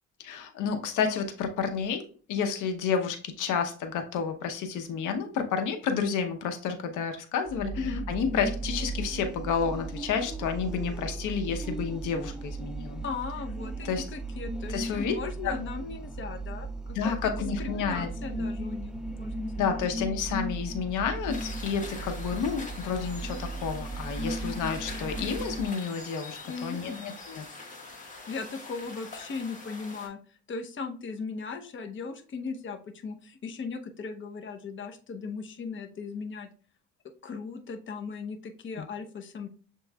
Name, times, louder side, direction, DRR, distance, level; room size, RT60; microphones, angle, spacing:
voice 1, 0.2-13.0 13.8-14.0 14.7-15.2 15.4-15.5 16.9-18.1 19.6-27.4 38.8-38.9, left 6 dB, 85° left, 6 dB, 0.8 m, -30 dB
sound 1, 7.5-25.7, right 2 dB, 5° right, 0.3 m, -36 dB
voice 2, 13.0-19.5 26.4-27.1 28.3-36.5 37.2-39.5, left 5 dB, 40° left, 5 dB, 0.7 m, -38 dB
sound 2, 21.3-30.1, left 3 dB, 25° left, 1.5 m, -43 dB
7.1 x 3.0 x 2.3 m, 0.40 s
cardioid pair, 90°, 30 cm